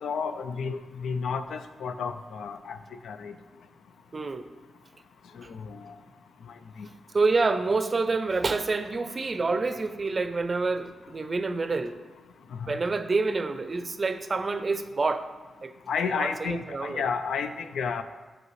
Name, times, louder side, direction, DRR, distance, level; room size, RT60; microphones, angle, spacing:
voice 1, 0.0-2.8 3.0-3.3 5.5-5.9 6.8-6.9 15.9-18.0, left 5 dB, 90° left, 9 dB, 0.4 m, -31 dB
voice 2, 4.1-4.5 7.1-12.0 12.7-15.3 15.6-15.7 16.2-17.1, right 3 dB, 40° right, 10 dB, 0.5 m, -27 dB
8.0 x 5.9 x 3.2 m, 1.3 s
cardioid pair, 70°, 0 cm